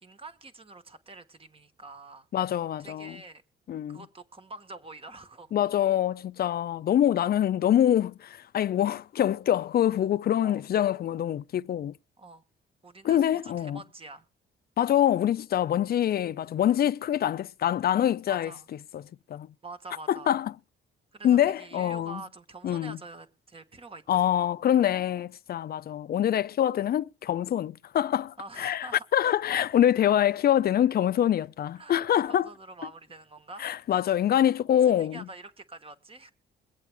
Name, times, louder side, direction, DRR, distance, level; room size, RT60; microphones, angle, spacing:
voice 1, 0.0-2.3 2.8-3.4 3.9-5.5 6.4-6.5 10.4-10.6 12.2-12.4 12.8-14.3 18.3-18.7 19.6-20.4 21.1-24.4 28.4-29.2 31.8-32.0 32.3-34.0 35.0-36.3, right 3 dB, 30° right, 1.3 m, -46 dB
voice 2, 2.3-3.2 3.7-4.0 5.5-12.0 13.0-13.8 14.8-18.5 18.9-19.0 19.3-19.5 20.1-20.5 21.2-22.2 22.6-23.0 24.1-32.5 33.6-35.2, left 11 dB, 50° left, 0.5 m, -25 dB
22.0 x 8.3 x 3.4 m
cardioid pair, 90°, 20 cm